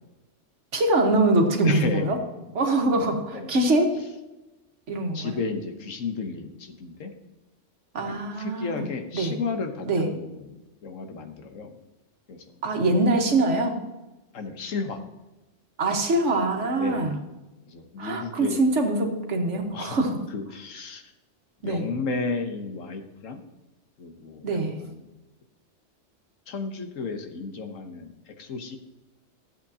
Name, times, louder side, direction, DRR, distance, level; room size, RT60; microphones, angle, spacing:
voice 1, 0.7-2.2 2.5-4.0 4.9-5.4 7.9-8.8 9.1-9.3 9.9-10.1 12.6-13.8 15.8-17.1 18.0-20.2 21.6-21.9 24.4-24.8, right 2 dB, 65° right, 3 dB, 1.5 m, -23 dB
voice 2, 1.6-2.2 2.8-3.0 3.3-3.5 5.1-7.1 8.1-10.5 10.8-11.8 12.3-12.4 14.3-15.0 16.8-17.1 17.7-18.6 19.7-20.0 20.3-21.1 21.6-23.4 24.0-25.1 26.5-28.8, left 4 dB, 80° left, 6 dB, 1.4 m, -33 dB
13.0 x 7.8 x 2.8 m, 1.1 s
omnidirectional pair, 1.3 m